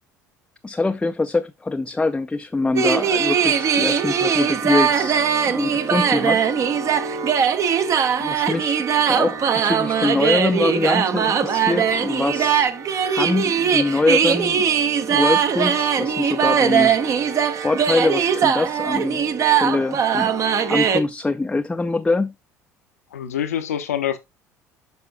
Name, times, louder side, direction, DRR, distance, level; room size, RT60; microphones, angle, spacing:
voice 1, 0.6-5.2 5.5-6.4 8.2-12.7 13.0-14.6 15.1-16.9 17.6-20.3 20.7-22.3, left 3 dB, 10° left, 0.5 m, -24 dB
sound 1, 2.8-21.0, right 7 dB, 40° right, 0.9 m, -20 dB
voice 2, 23.1-24.2, left 10 dB, 75° left, 0.9 m, -25 dB
9.4 x 6.0 x 2.3 m
figure-of-eight pair, 60°, 8 cm